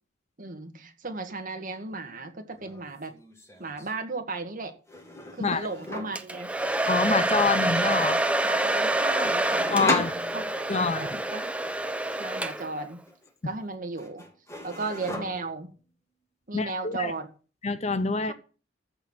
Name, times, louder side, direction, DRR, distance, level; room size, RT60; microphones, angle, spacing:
voice 1, 0.4-3.2 3.6-4.7 5.3-6.5 8.4-10.0 10.3-11.5 12.2-13.0 13.4-14.2 14.6-15.7 16.5-17.3 18.3-18.4, right 3 dB, 45° right, 1.9 m, -35 dB
sound 1, 2.5-2.8 3.1-3.9 4.9-6.3 9.2-10.9 13.1-13.7 14.0-15.7, left 1 dB, 15° left, 1.9 m, -35 dB
Domestic sounds home sounds, 6.2-12.9, right 1 dB, 5° right, 0.7 m, -27 dB
voice 2, 6.9-8.2 9.7-10.1 10.7-11.2 16.5-17.1 17.6-18.3, left 4 dB, 35° left, 0.7 m, -26 dB
14.0 x 4.7 x 7.3 m
head